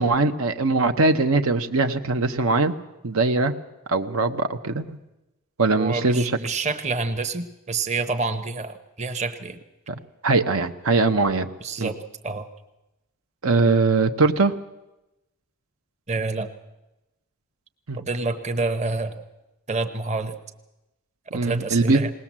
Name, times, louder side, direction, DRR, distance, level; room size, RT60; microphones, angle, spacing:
voice 1, 0.0-2.7 3.0-3.5 3.9-5.0 5.6-6.4 9.9-11.5 11.8-11.9 13.4-14.5 17.9-18.0 21.3-22.0, right 3 dB, 80° right, 7 dB, 1.0 m, -21 dB
voice 2, 5.7-9.6 11.6-12.0 12.2-12.5 16.1-16.5 18.1-19.2 19.7-20.4 21.3-22.1, right 3 dB, 30° right, 8 dB, 1.0 m, -28 dB
20.0 x 19.0 x 7.4 m, 0.98 s
head